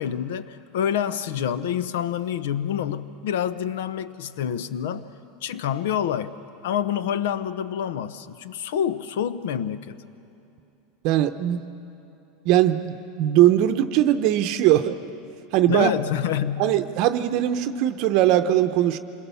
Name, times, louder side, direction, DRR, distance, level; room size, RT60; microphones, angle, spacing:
voice 1, 0.0-5.1 5.4-10.0 15.7-16.7, left 9 dB, 90° left, 14 dB, 0.9 m, -27 dB
voice 2, 11.0-11.6 12.4-15.0 15.5-15.9 16.6-19.0, right 12 dB, 45° right, 9 dB, 0.7 m, -20 dB
27.5 x 22.0 x 7.0 m, 2.8 s
supercardioid pair, 165°, 0 cm